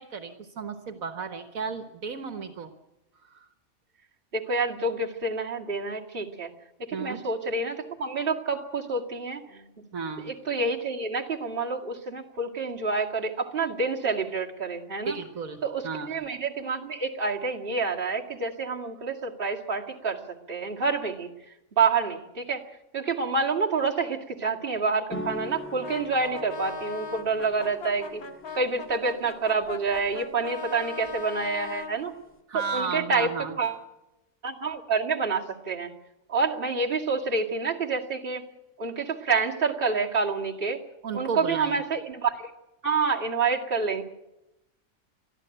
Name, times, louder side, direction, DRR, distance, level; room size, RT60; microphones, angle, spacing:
voice 1, 0.0-2.7 3.2-3.5 6.9-7.2 9.9-10.3 15.0-16.2 32.5-33.6 41.0-41.8, right 5 dB, 70° right, 8 dB, 1.7 m, -34 dB
voice 2, 4.3-6.5 6.9-9.6 10.3-15.2 15.6-20.2 20.5-21.3 21.8-22.6 22.9-28.2 28.5-32.1 32.7-33.3 33.6-33.8 34.4-35.9 36.3-38.4 38.8-40.8 41.1-42.5 42.8-44.0, right 4 dB, 40° right, -1 dB, 2.4 m, -28 dB
sound 1, 25.1-32.4, left 1 dB, 10° left, 2.0 m, -43 dB
Brass instrument, 25.8-32.0, left 5 dB, 80° left, 2.0 m, -39 dB
22.5 x 14.0 x 9.0 m, 0.93 s
omnidirectional pair, 1.5 m